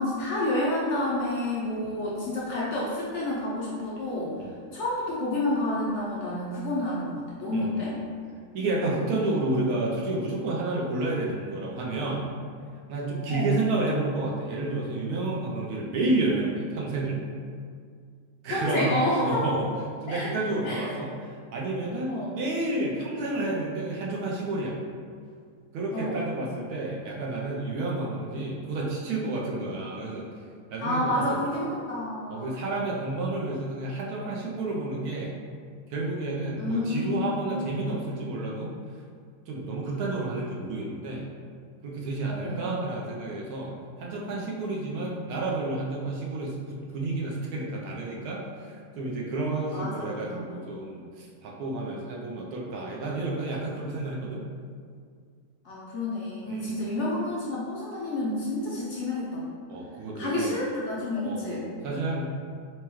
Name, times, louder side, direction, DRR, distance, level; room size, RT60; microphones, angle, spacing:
voice 1, 0.0-4.4 4.7-7.9 13.3-13.5 18.5-19.6 20.1-20.3 20.6-20.8 22.1-22.3 25.9-26.2 30.8-32.5 36.6-37.7 42.3-42.7 49.7-50.4 55.6-59.4 60.1-61.7, left 1 dB, 65° left, -6 dB, 0.7 m, -29 dB
voice 2, 7.5-8.0 8.5-12.3 12.9-17.3 18.4-19.0 19.2-19.7 20.0-24.8 25.7-30.3 30.7-31.5 32.3-35.3 35.9-38.7 39.5-41.3 41.8-54.4 56.5-56.9 59.7-60.6 61.2-62.3, right 2 dB, 75° right, -3 dB, 1.0 m, -30 dB
4.5 x 2.2 x 3.0 m, 2.1 s
omnidirectional pair, 1.8 m